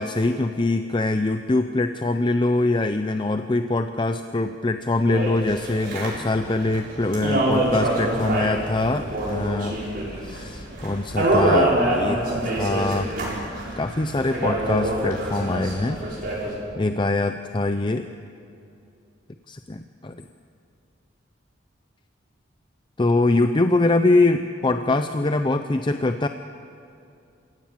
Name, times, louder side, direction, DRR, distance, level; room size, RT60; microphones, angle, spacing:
voice 1, 0.0-9.8 10.2-13.1 13.8-16.0 16.8-18.1 19.5-20.2 23.0-26.3, left 2 dB, 25° left, 8 dB, 0.6 m, -23 dB
sound 1, 5.1-16.6, right 1 dB, 50° right, 6.9 m, -25 dB
28.5 x 17.0 x 7.5 m, 2.6 s
head